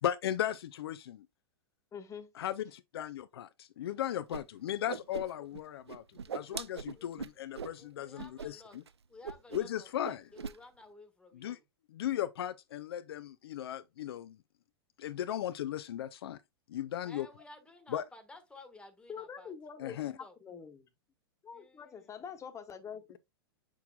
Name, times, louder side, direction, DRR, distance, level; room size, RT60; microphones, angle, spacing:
voice 1, 0.0-1.3 2.4-6.0 6.3-8.8 9.5-10.3 11.3-11.6 11.9-14.4 15.0-16.4 16.7-17.3 17.9-18.0 19.8-20.1, left 11 dB, 70° left, 0.5 m, -36 dB
voice 2, 1.9-2.3 11.4-11.5 19.1-20.9 21.4-23.2, left 7 dB, 20° left, 1.2 m, -46 dB
Whoosh swoosh swish, 4.3-4.4 4.7-5.6 5.9-7.8 8.2-8.5 8.7-8.9 9.2-9.8 10.0-10.6, right 6 dB, 85° right, 0.4 m, -41 dB
voice 3, 6.2-7.3 7.8-8.8 9.1-11.6 17.0-20.4 21.5-22.2, left 2 dB, 5° left, 1.4 m, -55 dB
6.8 x 6.1 x 2.2 m
hypercardioid pair, 105°, 13 cm